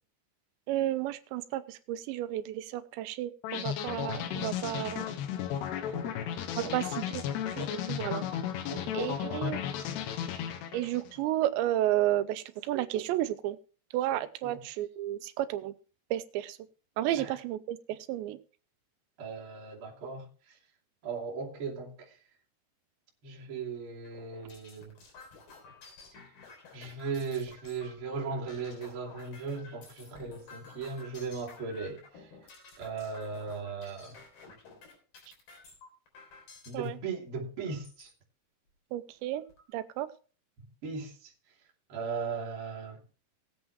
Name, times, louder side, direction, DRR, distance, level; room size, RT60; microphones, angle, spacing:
voice 1, 0.7-5.1 6.6-7.2 7.9-8.3 8.9-9.6 10.7-13.6 13.9-15.7 16.1-16.6 17.0-18.4 36.7-37.0 38.9-39.4 39.7-40.1, right 13 dB, 90° right, 3.1 m, -32 dB
sound 1, 3.4-11.1, left 9 dB, 80° left, 3.1 m, -34 dB
voice 2, 19.2-20.3 21.0-22.2 23.2-25.0 26.7-32.3 32.8-34.2 36.7-38.1 40.8-41.3 41.9-43.0, right 4 dB, 35° right, 3.1 m, -37 dB
sound 2, 24.0-36.9 37.6-38.1 38.7-38.8 39.1-39.7, left 4 dB, 60° left, 5.1 m, -53 dB
19.5 x 8.0 x 3.2 m
omnidirectional pair, 5.0 m